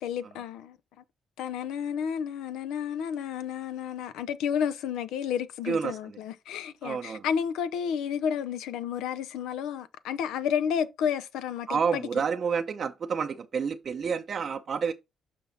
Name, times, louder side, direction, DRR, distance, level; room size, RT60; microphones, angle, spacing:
voice 1, 0.0-1.0 1.4-12.0, left 8 dB, 90° left, 0.7 m, -31 dB
voice 2, 5.7-6.1 6.8-7.3 11.7-14.9, right 6 dB, 50° right, 0.6 m, -29 dB
6.0 x 5.9 x 4.0 m
cardioid pair, 90°, 0 cm